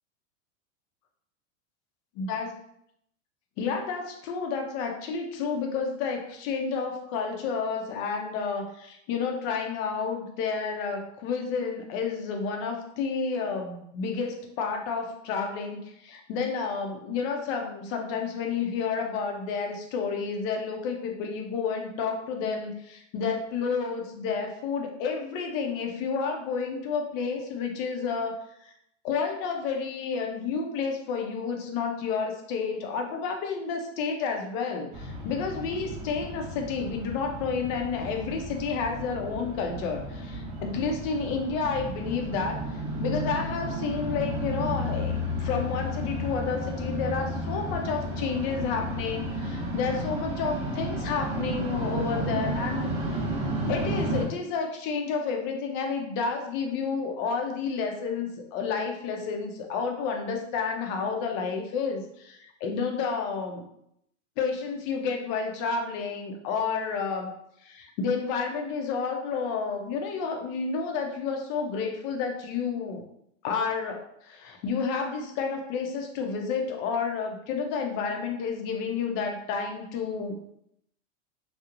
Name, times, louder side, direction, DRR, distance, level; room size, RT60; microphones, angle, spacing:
voice 1, 2.2-2.5 3.6-28.4 29.0-53.2 53.7-63.7 64.4-67.3 67.6-73.0 73.4-80.4, left 5 dB, 45° left, 3 dB, 0.5 m, -30 dB
sound 1, 34.9-54.2, equal, 20° right, 0.7 m, -32 dB
2.9 x 2.0 x 2.4 m, 0.75 s
supercardioid pair, 125°, 38 cm